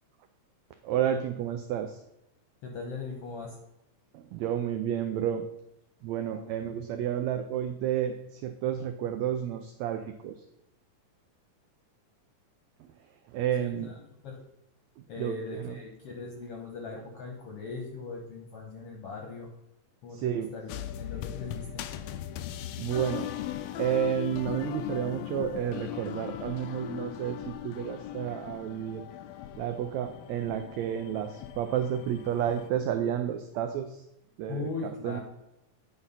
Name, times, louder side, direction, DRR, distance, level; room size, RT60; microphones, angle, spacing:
voice 1, 0.8-2.0 4.1-5.5 6.0-10.4 12.8-12.9 13.3-13.9 15.0-15.8 20.1-20.6 22.8-23.3 23.8-29.0 29.6-34.0 34.4-35.2, right 10 dB, 80° right, 7 dB, 1.6 m, -31 dB
voice 2, 2.6-3.6 6.3-6.6 13.6-14.0 14.2-14.4 15.1-19.5 20.0-21.8 34.5-35.2, left 3 dB, 65° left, 1 dB, 1.6 m, -39 dB
sound 1, 20.7-32.7, left 12 dB, 85° left, 1.5 m, -39 dB
9.0 x 4.2 x 5.6 m, 0.85 s
omnidirectional pair, 3.6 m